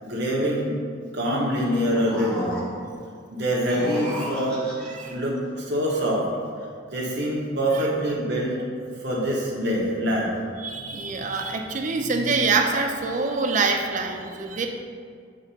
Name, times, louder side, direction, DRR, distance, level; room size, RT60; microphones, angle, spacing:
voice 1, 0.0-0.8 1.1-2.5 3.3-4.7 5.1-6.3 6.9-8.6 9.0-10.3, equal, 60° right, -4 dB, 1.0 m, -25 dB
sound 1, 1.6-3.0 3.5-5.1, equal, 5° left, 1.1 m, -34 dB
voice 2, 4.9-5.2 7.7-7.8 10.6-14.7, right 4 dB, 40° right, 3 dB, 0.6 m, -25 dB
7.4 x 3.0 x 5.5 m, 2.2 s
head